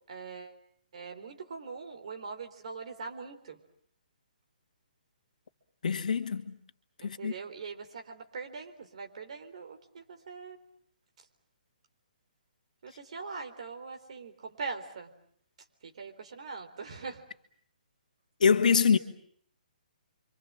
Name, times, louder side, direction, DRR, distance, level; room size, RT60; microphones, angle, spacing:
voice 1, 0.1-0.6 0.9-3.6 7.0-10.6 12.8-15.1 15.8-17.2, right 4 dB, 45° right, 3.9 m, -42 dB
voice 2, 5.8-6.6 7.0-7.3 18.4-19.0, left 6 dB, 60° left, 2.0 m, -24 dB
29.0 x 25.5 x 7.6 m
hypercardioid pair, 175°, 5 cm